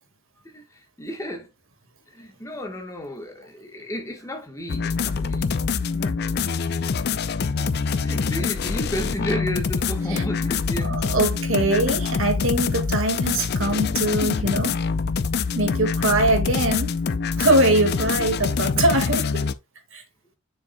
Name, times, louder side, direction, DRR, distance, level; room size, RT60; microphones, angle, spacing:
voice 1, 0.4-1.5 2.1-6.5 7.6-7.7 8.0-11.1, equal, 15° left, 1.2 m, -33 dB
sound 1, 4.7-19.5, left 5 dB, 45° left, 0.4 m, -25 dB
voice 2, 10.8-14.8 15.5-16.9 17.4-19.5 19.9-20.0, right 1 dB, 65° right, 1.8 m, -22 dB
7.1 x 6.9 x 2.2 m
head